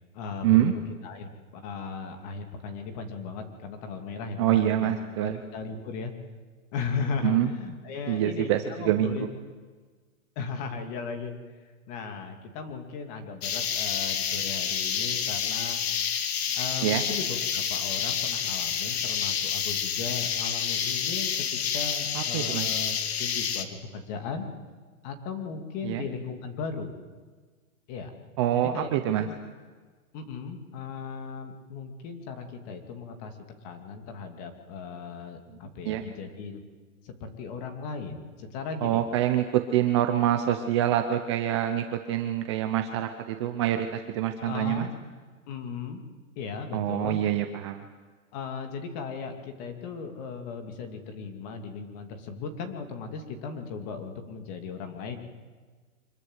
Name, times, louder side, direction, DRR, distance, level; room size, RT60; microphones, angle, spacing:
voice 1, 0.1-6.1 6.7-9.3 10.4-11.3 11.9-15.8 16.6-24.5 25.0-26.9 27.9-28.1 28.5-29.4 30.1-33.4 33.6-36.6 37.0-39.0 44.4-44.9 45.5-46.0 46.4-47.2 48.3-55.2, left 5 dB, 30° left, 6 dB, 2.6 m, -37 dB
voice 2, 4.4-5.4 7.2-7.5 8.1-9.2 16.8-17.0 22.1-22.7 25.8-26.0 28.4-29.3 35.8-36.0 38.8-44.9 46.7-47.8, right 12 dB, 20° right, 6 dB, 0.7 m, -25 dB
sound 1, 13.4-23.6, left 8 dB, 45° left, 1.8 m, -29 dB
25.5 x 21.5 x 8.1 m, 1.4 s
hypercardioid pair, 165°, 42 cm